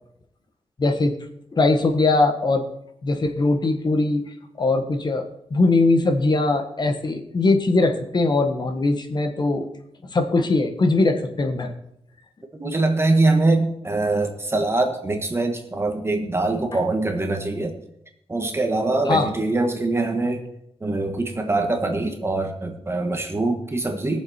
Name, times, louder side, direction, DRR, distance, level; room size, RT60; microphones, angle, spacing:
voice 1, 0.8-1.1 1.5-2.6 3.0-4.2 4.6-5.2 5.5-9.7 10.0-11.7 19.1-19.3, left 3 dB, 45° left, 6 dB, 1.5 m, -20 dB
voice 2, 12.5-17.7 18.3-20.4 20.8-24.2, right 2 dB, 25° right, 4 dB, 1.6 m, -23 dB
20.0 x 7.2 x 4.5 m, 0.76 s
wide cardioid pair, 135°, 10 cm